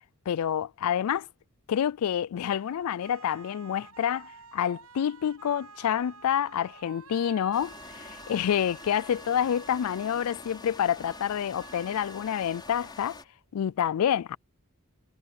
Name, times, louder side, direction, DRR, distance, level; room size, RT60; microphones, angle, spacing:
voice 1, 0.3-1.3 1.7-13.2 13.5-14.4, left 9 dB, 80° left, 0.3 m, -28 dB
sound 1, 2.4-13.4, right 5 dB, 80° right, 6.5 m, -51 dB
sound 2, 7.5-13.2, left 3 dB, 20° left, 4.9 m, -46 dB
head